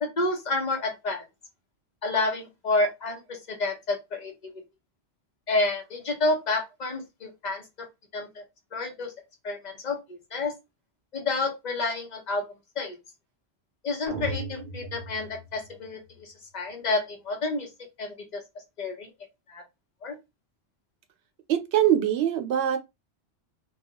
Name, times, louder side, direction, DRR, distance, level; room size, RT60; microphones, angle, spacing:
voice 1, 0.0-1.2 2.0-4.3 5.5-7.9 8.1-8.4 8.7-9.1 9.4-10.5 11.1-12.4 12.8-13.0 13.8-17.7 18.0-18.4 18.8-19.1 19.5-19.6 20.0-20.1, left 2 dB, 45° left, 0.9 m, -29 dB
sound 1, 14.1-16.2, right 2 dB, 55° right, 0.6 m, -37 dB
voice 2, 21.5-22.8, right 10 dB, 75° right, 0.9 m, -23 dB
2.3 x 2.3 x 2.9 m
omnidirectional pair, 1.2 m